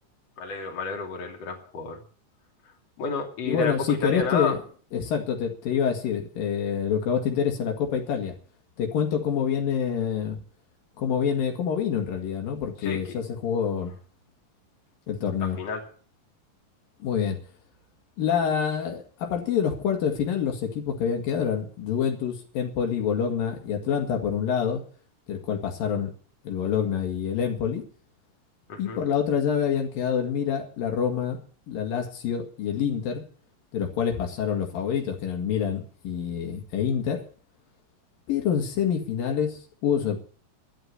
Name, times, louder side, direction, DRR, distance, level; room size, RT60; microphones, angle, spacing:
voice 1, 0.4-2.0 3.0-4.6 12.8-13.2 15.4-15.8 28.7-29.0, left 4 dB, 50° left, 1 dB, 3.6 m, -31 dB
voice 2, 3.5-4.6 4.9-8.3 8.8-10.4 11.0-13.9 15.1-15.6 17.0-17.4 18.2-24.8 25.3-26.1 26.4-27.8 28.8-31.4 31.7-33.3 33.7-37.2 38.3-40.2, left 7 dB, 90° left, 3 dB, 3.9 m, -27 dB
12.5 x 8.7 x 9.7 m, 0.43 s
omnidirectional pair, 3.9 m